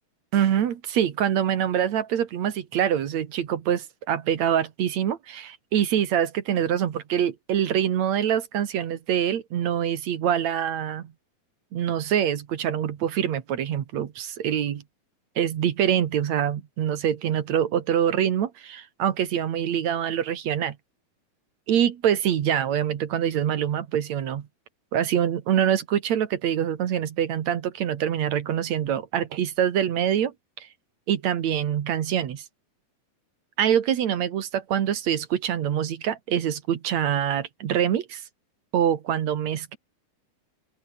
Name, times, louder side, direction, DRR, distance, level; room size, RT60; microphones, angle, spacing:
voice 1, 0.3-11.1 11.7-14.8 15.4-20.8 21.7-24.5 24.9-30.7 31.1-32.4 33.6-38.2 38.7-39.8, right 9 dB, 55° right, 2.5 m, -25 dB
open air
omnidirectional pair, 4.2 m